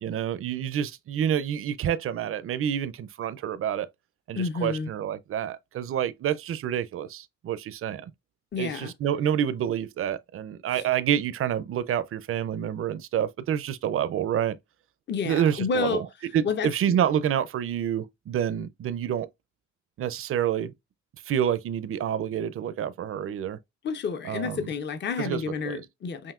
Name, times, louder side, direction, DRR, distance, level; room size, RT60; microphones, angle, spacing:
voice 1, 0.0-3.9 4.3-8.1 8.6-14.6 15.3-16.0 16.3-19.3 20.0-20.7 21.3-23.6 24.3-24.7 25.2-25.8, right 9 dB, 45° right, 0.5 m, -28 dB
voice 2, 4.3-4.9 8.5-8.9 10.7-10.8 15.1-16.0 16.4-17.0 23.8-26.3, left 5 dB, 35° left, 0.6 m, -30 dB
5.6 x 2.6 x 2.4 m
cardioid pair, 90°, 30 cm